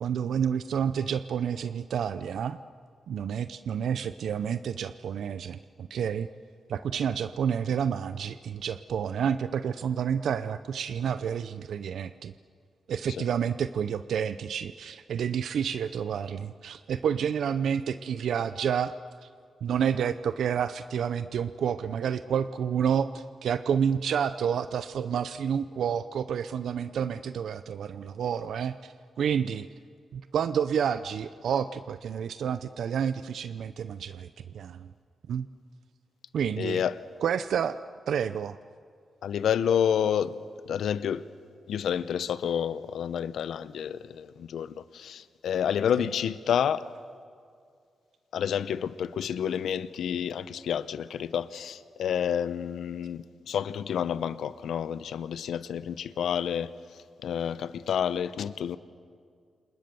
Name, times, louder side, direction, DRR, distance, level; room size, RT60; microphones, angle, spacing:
voice 1, 0.0-2.6 3.1-6.3 6.7-12.3 12.9-18.9 19.2-19.3 19.6-29.7 30.1-34.3 34.5-34.9 35.3-35.5 36.3-36.8 37.2-37.8 38.1-38.6, right 8 dB, 85° right, 0.6 m, -29 dB
voice 2, 36.6-36.9 39.2-40.3 40.7-41.2 41.7-46.9 48.3-56.7 57.2-58.8, left 8 dB, 90° left, 0.8 m, -29 dB
30.0 x 27.5 x 6.9 m
cardioid pair, 100°, 0 cm